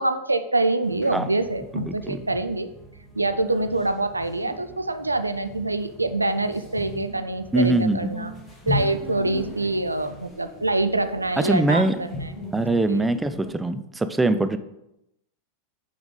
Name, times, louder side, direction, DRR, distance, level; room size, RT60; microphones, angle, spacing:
voice 1, 0.0-2.7 3.1-8.3 8.7-12.3 12.9-13.1, right 2 dB, 85° right, 9 dB, 0.4 m, -25 dB
sound 1, 0.8-13.5, left 1 dB, 10° left, 1.4 m, -38 dB
voice 2, 1.7-2.2 7.5-8.1 11.4-12.0 12.5-14.6, right 2 dB, 10° right, 11 dB, 0.4 m, -22 dB
6.9 x 5.1 x 3.8 m, 0.85 s
figure-of-eight pair, 90°, 0 cm